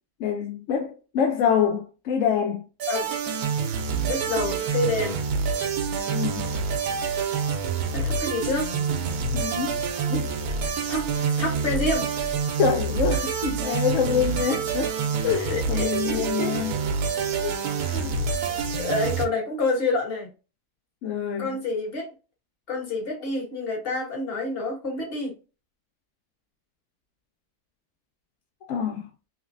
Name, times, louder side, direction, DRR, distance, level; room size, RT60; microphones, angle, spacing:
voice 1, 0.2-2.6 6.1-6.5 9.3-9.8 10.1-10.4 11.2-11.3 12.6-14.9 15.2-16.7 17.4-17.6 17.8-18.2 21.0-21.5 28.7-29.1, left 7 dB, 70° left, 0.7 m, -26 dB
sound 1, 2.8-19.3, right 5 dB, 70° right, 1.1 m, -27 dB
voice 2, 4.1-5.2 7.9-8.7 10.9-11.1 11.4-12.0 15.5-16.5 18.5-20.3 21.4-22.1 22.7-25.3, left 2 dB, 40° left, 1.2 m, -28 dB
3.2 x 3.0 x 2.5 m
omnidirectional pair, 1.7 m